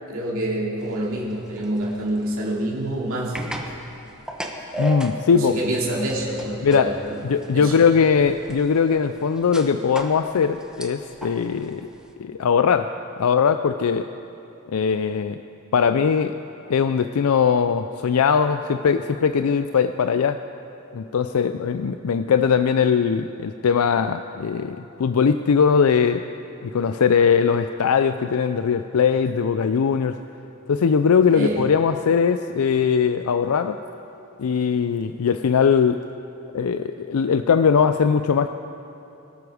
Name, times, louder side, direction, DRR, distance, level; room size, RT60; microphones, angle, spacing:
voice 1, 0.1-3.4 5.3-7.2 7.5-7.8 31.3-31.6, right 1 dB, 70° right, -4 dB, 2.6 m, -27 dB
sound 1, 0.8-12.1, right 1 dB, 5° right, 1.1 m, -37 dB
voice 2, 4.8-5.6 6.6-6.9 7.2-11.9 12.2-12.9 13.2-14.1 14.7-15.4 15.7-16.3 16.7-20.4 20.9-26.2 26.6-30.2 30.7-33.8 34.4-36.0 36.5-38.5, left 6 dB, 80° left, 9 dB, 0.4 m, -20 dB
21.5 x 13.0 x 4.9 m, 2.8 s
head